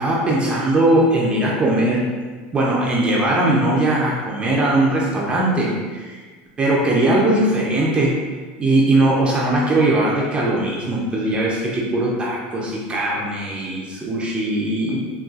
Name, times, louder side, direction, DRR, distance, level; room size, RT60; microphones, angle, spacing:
voice 1, 0.0-2.0 2.5-6.2 6.6-8.2 8.6-15.0, right 1 dB, 20° right, -4 dB, 0.4 m, -19 dB
3.9 x 2.2 x 2.4 m, 1.4 s
supercardioid pair, 140°, 6 cm